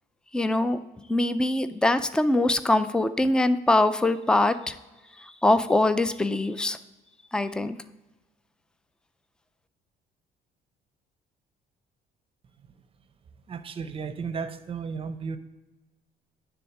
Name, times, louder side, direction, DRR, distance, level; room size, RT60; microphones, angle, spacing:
voice 1, 0.3-0.8 1.1-4.8 5.2-6.8 7.3-7.8, left 2 dB, 5° left, 13 dB, 0.4 m, -23 dB
voice 2, 13.5-15.4, right 5 dB, 35° right, 11 dB, 0.6 m, -34 dB
10.0 x 3.6 x 6.0 m, 1.1 s
cardioid pair, 110°, 17 cm